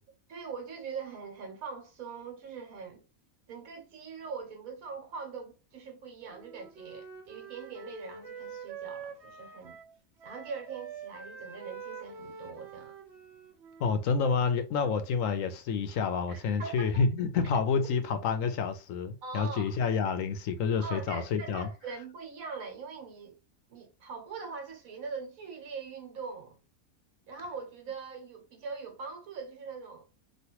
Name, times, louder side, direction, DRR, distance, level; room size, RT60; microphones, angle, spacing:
voice 1, 0.3-3.0 3.5-9.8 10.2-12.9 16.3-17.1 19.2-19.7 20.8-23.4 23.7-26.6 27.3-30.0, right 5 dB, 75° right, 1.4 m, -42 dB
Wind instrument woodwind instrument, 6.3-9.9 10.2-14.1, right 6 dB, 55° right, 1.0 m, -45 dB
voice 2, 13.8-21.7, left 5 dB, 70° left, 0.9 m, -29 dB
3.1 x 2.4 x 2.8 m
omnidirectional pair, 1.5 m